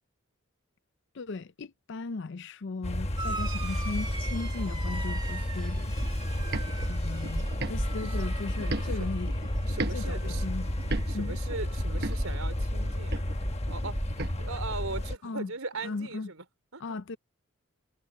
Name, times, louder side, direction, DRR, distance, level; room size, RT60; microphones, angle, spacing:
voice 1, 1.1-6.0 6.9-9.3 9.9-10.7 11.1-11.4 15.2-15.5 15.8-16.3 16.8-17.2, left 3 dB, 55° left, 0.5 m, -37 dB
sound 1, 2.8-15.2, left 1 dB, 30° left, 1.2 m, -32 dB
sound 2, 3.2-12.2 12.5-13.2 14.3-14.4, right 3 dB, 20° right, 1.8 m, -43 dB
sound 3, 6.0-10.0 10.3-14.3, right 2 dB, 50° right, 1.1 m, -36 dB
voice 2, 9.7-10.5 11.1-13.2 13.7-14.0 14.4-16.4 16.7-17.0, right 3 dB, 80° right, 3.8 m, -39 dB
head